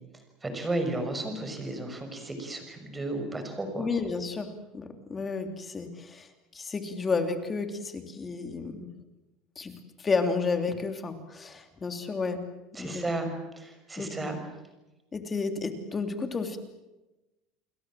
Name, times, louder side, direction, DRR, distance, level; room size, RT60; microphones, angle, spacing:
voice 1, 0.4-3.9 12.7-14.4, right 2 dB, 15° right, 7 dB, 6.2 m, -33 dB
voice 2, 3.8-6.3 6.5-8.9 9.6-12.4 12.8-13.1 14.0-14.3 15.1-16.6, left 4 dB, 20° left, 7 dB, 3.1 m, -32 dB
30.0 x 21.5 x 7.6 m, 1.0 s
supercardioid pair, 125°, 0 cm